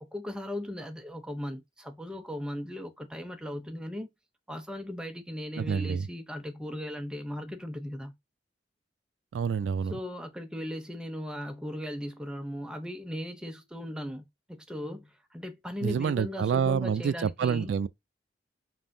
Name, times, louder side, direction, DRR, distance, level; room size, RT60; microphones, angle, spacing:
voice 1, 0.0-4.1 4.5-8.1 9.9-17.7, left 1 dB, 5° right, 0.6 m, -38 dB
voice 2, 5.6-6.1 9.3-10.0 15.8-17.9, right 6 dB, 90° right, 0.3 m, -28 dB
5.3 x 2.7 x 2.6 m
head